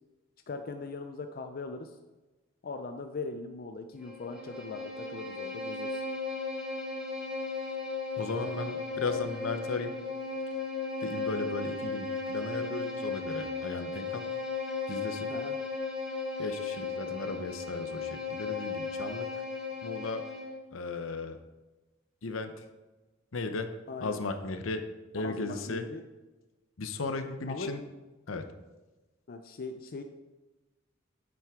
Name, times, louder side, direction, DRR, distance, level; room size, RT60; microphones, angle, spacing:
voice 1, 0.5-2.0 2.6-6.0 15.3-15.6 23.9-24.2 25.2-26.0 27.5-27.7 29.3-30.0, left 3 dB, 50° left, 6 dB, 0.5 m, -40 dB
Bowed string instrument, 4.0-20.6, left 4 dB, 5° right, 1.5 m, -36 dB
voice 2, 8.2-9.9 11.0-14.2 14.9-15.3 16.4-19.3 19.8-20.2 20.7-21.4 22.2-22.6 23.3-23.7 24.0-24.8 25.1-25.8 26.8-27.8 28.3-28.5, left 3 dB, 75° left, 8 dB, 0.8 m, -36 dB
9.1 x 7.5 x 3.6 m, 1.2 s
head